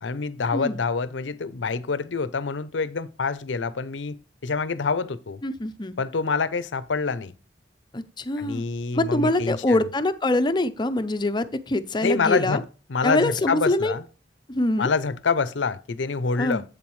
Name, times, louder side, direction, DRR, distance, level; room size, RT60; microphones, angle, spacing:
voice 1, 0.0-4.2 4.4-5.4 6.0-7.3 8.4-9.8 12.0-12.6 12.9-14.0 14.8-16.6, left 4 dB, 85° left, 0.6 m, -26 dB
voice 2, 5.4-5.9 7.9-8.6 8.9-12.6 13.0-13.9 14.5-14.9 16.4-16.6, left 2 dB, 25° left, 0.6 m, -24 dB
8.3 x 7.1 x 3.2 m
head